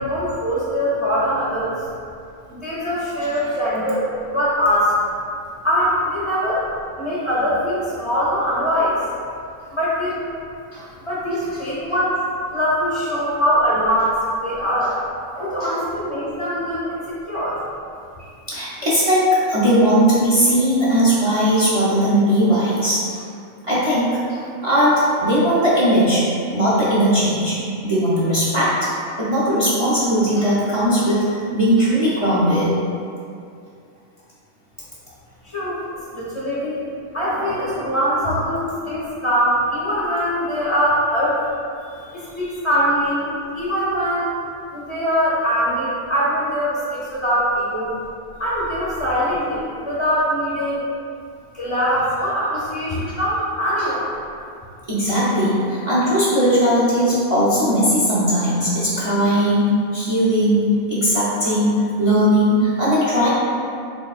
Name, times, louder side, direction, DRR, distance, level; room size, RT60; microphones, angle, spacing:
voice 1, 0.0-1.9 2.5-5.0 5.6-6.7 7.0-9.1 9.7-10.2 11.1-12.2 12.5-15.0 15.4-17.6 35.4-35.8 36.1-36.9 37.1-41.4 42.1-44.4 44.7-48.0 48.4-50.9 51.5-54.1, equal, 35° left, -10 dB, 0.5 m, -22 dB
voice 2, 15.3-15.7 16.1-16.3 18.2-23.2 23.6-26.2 26.5-27.6 27.8-28.9 29.2-32.7 37.2-37.7 54.9-63.3, equal, 35° right, -10 dB, 0.5 m, -18 dB
4.1 x 3.1 x 2.4 m, 2.4 s
omnidirectional pair, 1.5 m